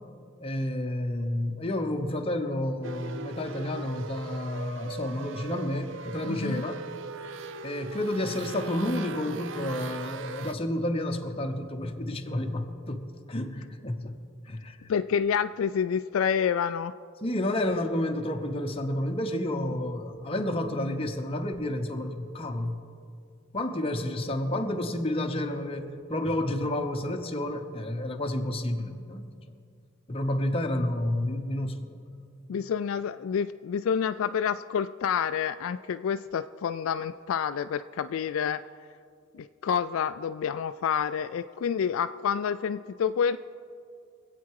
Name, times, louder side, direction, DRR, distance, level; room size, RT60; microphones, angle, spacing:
voice 1, 0.4-6.8 7.6-14.2 14.4-14.9 17.2-22.8 23.5-29.3 30.1-32.0, left 1 dB, 25° left, 4 dB, 0.9 m, -30 dB
sound 1, 2.8-10.5, right 4 dB, 60° right, 0.5 m, -40 dB
voice 2, 6.2-6.6 14.9-16.9 32.5-38.6 39.3-43.4, left 7 dB, 70° left, 11 dB, 0.3 m, -28 dB
24.5 x 8.5 x 4.8 m, 2.4 s
head